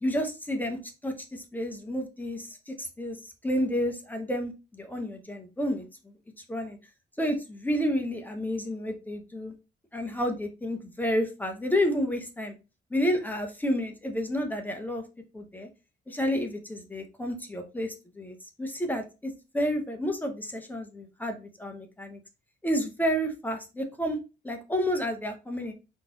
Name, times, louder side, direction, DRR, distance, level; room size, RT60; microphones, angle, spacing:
voice 1, 0.0-6.1 6.5-6.8 7.2-9.5 9.9-12.5 12.9-15.0 15.3-15.7 16.1-22.2 22.6-24.2 24.4-25.7, equal, 10° left, 4 dB, 0.5 m, -30 dB
3.6 x 2.5 x 2.7 m, 0.29 s
cardioid pair, 160°, 20 cm